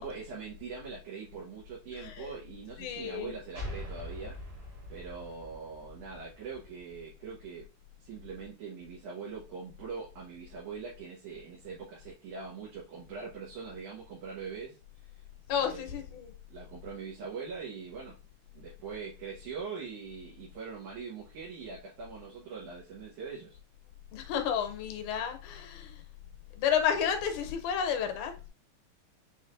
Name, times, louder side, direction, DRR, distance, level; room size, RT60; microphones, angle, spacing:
voice 1, 0.0-4.4 4.9-7.7 8.0-15.2 15.6-16.0 16.5-18.2 18.5-23.6, right 5 dB, 85° right, -6 dB, 2.7 m, -42 dB
voice 2, 2.8-3.3 15.5-16.3 24.1-26.0 26.6-28.5, left 8 dB, 80° left, 6 dB, 2.1 m, -31 dB
sound 1, 3.5-7.0, left 1 dB, 50° right, 2.4 m, -43 dB
6.3 x 3.2 x 2.5 m, 0.32 s
omnidirectional pair, 3.4 m